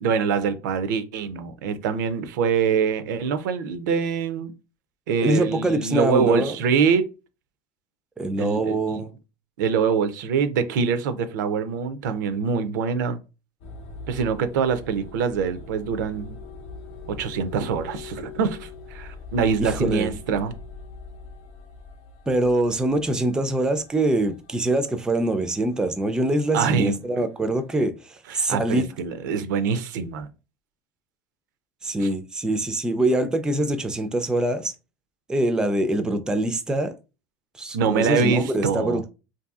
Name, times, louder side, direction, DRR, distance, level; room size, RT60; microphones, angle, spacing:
voice 1, 0.0-4.5 5.1-7.1 8.4-9.0 9.6-13.2 14.1-16.4 17.1-20.5 26.5-27.0 28.3-30.3 32.0-32.1 37.7-39.0, right 6 dB, 85° right, 0.4 m, -24 dB
voice 2, 5.2-6.6 8.2-9.1 19.6-20.1 22.3-28.9 31.8-34.7 35.3-36.9 37.6-39.1, right 1 dB, 5° right, 0.3 m, -24 dB
sound 1, 13.6-27.7, left 4 dB, 65° left, 0.7 m, -42 dB
2.6 x 2.6 x 2.3 m
supercardioid pair, 120°, 10 cm